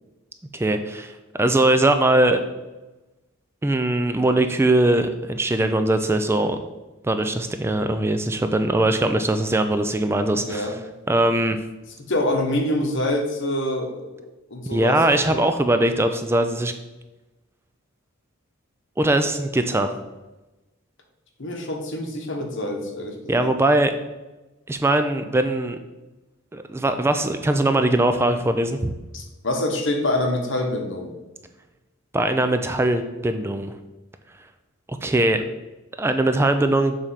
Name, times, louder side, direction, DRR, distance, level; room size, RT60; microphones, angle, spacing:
voice 1, 0.5-1.1 1.4-2.4 3.6-6.6 7.0-10.8 11.1-11.6 14.7-16.7 19.0-19.9 23.3-23.9 24.7-25.8 26.5-28.9 32.1-33.7 34.9-35.4 36.0-37.0, right 1 dB, 10° right, 8 dB, 0.3 m, -21 dB
voice 2, 10.3-10.7 12.1-15.0 15.3-15.4 21.4-23.5 29.1-31.1, left 1 dB, 65° left, 2 dB, 1.2 m, -26 dB
7.2 x 3.3 x 5.6 m, 1.1 s
head